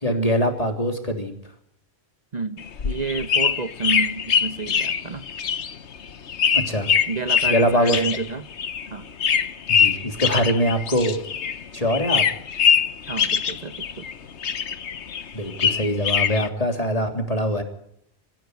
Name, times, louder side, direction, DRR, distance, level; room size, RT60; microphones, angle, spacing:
voice 1, 0.0-1.3 6.5-6.9 7.5-8.0 9.7-11.2 11.7-12.3 15.3-17.6, equal, 35° left, 5 dB, 3.5 m, -23 dB
voice 2, 2.3-5.2 7.1-8.5 8.9-9.1 13.1-14.1, right 4 dB, 40° right, 10 dB, 1.1 m, -30 dB
sound 1, 2.6-11.6 11.9-14.1 14.4-16.5, left 7 dB, 85° left, 1.4 m, -23 dB
25.5 x 15.5 x 9.5 m, 0.73 s
omnidirectional pair, 1.1 m